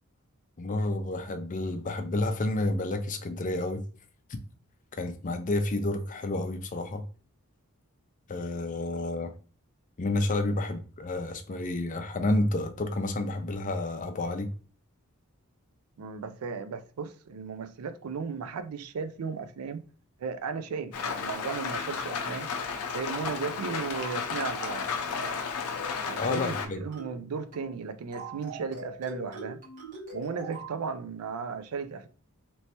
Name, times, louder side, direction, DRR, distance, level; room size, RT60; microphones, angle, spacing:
voice 1, 0.6-3.8 5.0-7.0 8.3-9.3 10.0-14.5 26.2-26.8, left 2 dB, 35° left, 0.4 m, -30 dB
voice 2, 16.0-19.8 20.2-22.5 22.9-24.9 26.0-29.6 30.1-32.1, right 5 dB, 75° right, 0.4 m, -35 dB
Rain, 20.9-26.7, left 5 dB, 85° left, 0.5 m, -33 dB
sound 1, 23.9-24.2 24.5-24.8 25.1-25.4 25.7-26.0 26.3-26.6 26.9-27.2 27.5-27.8 28.1-30.8, right 2 dB, 40° right, 1.3 m, -43 dB
3.2 x 3.0 x 2.8 m
head